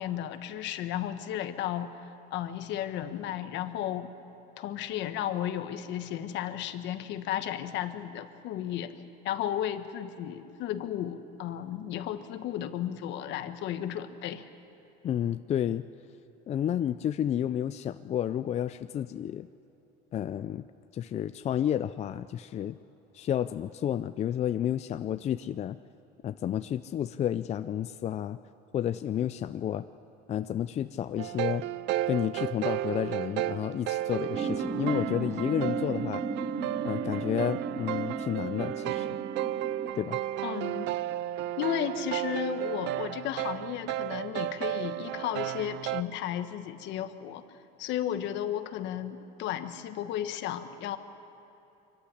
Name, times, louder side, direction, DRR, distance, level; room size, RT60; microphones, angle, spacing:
voice 1, 0.0-4.1 4.6-8.9 9.2-14.5 40.4-40.9 41.6-47.4 47.8-51.0, left 11 dB, 65° left, 9 dB, 1.4 m, -34 dB
voice 2, 15.0-15.9 16.5-19.5 20.1-20.6 20.9-22.8 23.1-25.8 26.2-28.4 28.7-29.9 30.3-31.7 32.1-36.2 36.8-39.2 39.9-40.2, left 10 dB, 35° left, 11 dB, 0.4 m, -31 dB
sound 1, 31.2-46.0, right 14 dB, 60° right, 0.5 m, -33 dB
sound 2, 34.3-39.9, right 4 dB, 30° right, 2.3 m, -35 dB
24.5 x 14.5 x 9.9 m, 2.9 s
cardioid pair, 125°, 20 cm